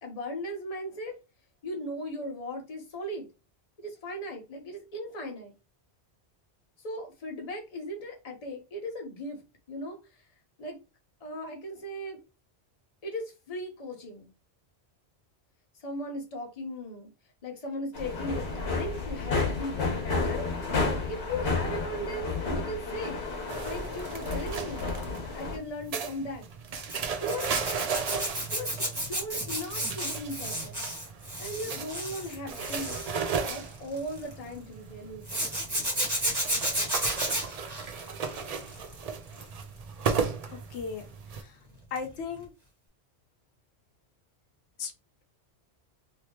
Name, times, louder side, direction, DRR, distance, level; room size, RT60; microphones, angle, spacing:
voice 1, 0.0-1.1 1.6-3.3 3.8-5.5 6.8-9.4 9.7-10.2 10.6-10.8 11.2-12.2 13.0-14.3 15.8-17.1 17.4-20.5 21.1-23.2 23.6-24.9 25.3-26.5 27.2-27.5 28.5-30.8 31.4-33.0 33.4-35.3, equal, 35° left, 2 dB, 1.0 m, -37 dB
sound 1, 17.9-25.6, left 3 dB, 70° left, 1.3 m, -31 dB
sound 2, 23.5-41.4, right 6 dB, 50° right, 0.4 m, -36 dB
Zipper (clothing), 26.9-34.3 35.3-38.9 39.3-39.6 42.0-42.1 42.4-42.5, right 1 dB, 20° right, 1.4 m, -32 dB
voice 2, 40.5-41.0 41.4-41.5 41.9-42.5 44.8-44.9, left 5 dB, 85° left, 6 dB, 1.0 m, -36 dB
3.1 x 2.9 x 2.9 m, 0.29 s
omnidirectional pair, 1.1 m